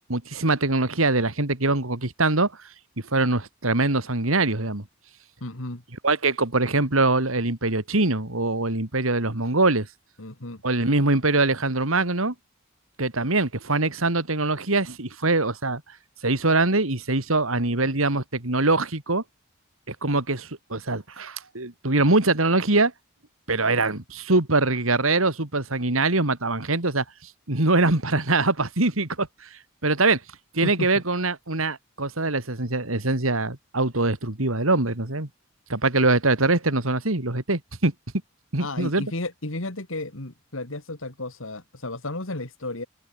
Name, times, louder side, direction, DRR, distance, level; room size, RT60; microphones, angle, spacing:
voice 1, 0.1-2.5 3.1-4.8 6.0-9.9 10.6-12.3 13.0-15.8 16.2-19.2 19.9-22.9 23.5-29.5 29.8-30.2 30.5-35.3 35.7-37.9 38.5-39.0, right 2 dB, 80° right, 3.1 m, -23 dB
voice 2, 5.4-5.8 10.2-10.6 30.6-30.9 38.6-42.9, left 2 dB, 70° left, 2.8 m, -33 dB
head